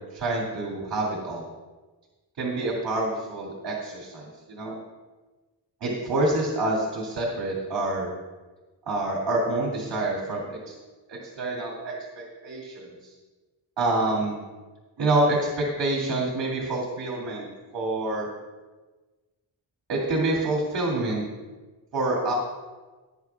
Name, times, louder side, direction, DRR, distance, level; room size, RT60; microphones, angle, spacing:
voice 1, 0.1-1.5 2.4-4.7 5.8-8.1 8.9-10.7 11.1-13.1 13.8-14.4 15.0-17.5 17.7-18.3 19.9-21.2 21.9-22.3, right 2 dB, 65° right, -4 dB, 2.5 m, -27 dB
17.0 x 9.8 x 2.4 m, 1.2 s
wide cardioid pair, 170°, 45 cm